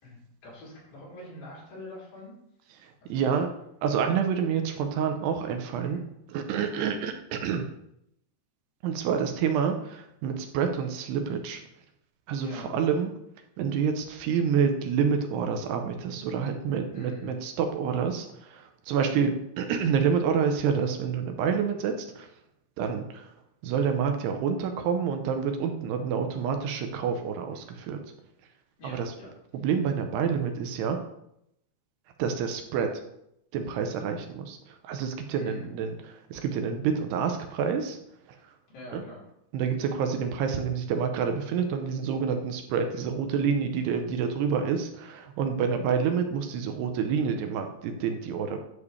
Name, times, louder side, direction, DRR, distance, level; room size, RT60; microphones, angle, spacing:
voice 1, 0.0-2.4 3.0-3.3 5.8-6.0 12.4-12.7 16.9-17.4 28.8-29.3 35.4-35.7 38.7-39.2, left 2 dB, 55° left, -7 dB, 5.3 m, -44 dB
voice 2, 2.8-3.5 3.8-6.0 6.3-7.7 8.8-11.6 12.3-13.1 13.6-22.3 22.8-23.3 23.6-28.0 28.8-29.1 29.5-31.0 32.2-32.9 33.5-38.0 38.3-38.4 38.9-39.0 39.5-48.6, right 6 dB, 85° right, 6 dB, 2.8 m, -28 dB
9.7 x 7.3 x 3.3 m, 0.77 s
omnidirectional pair, 4.9 m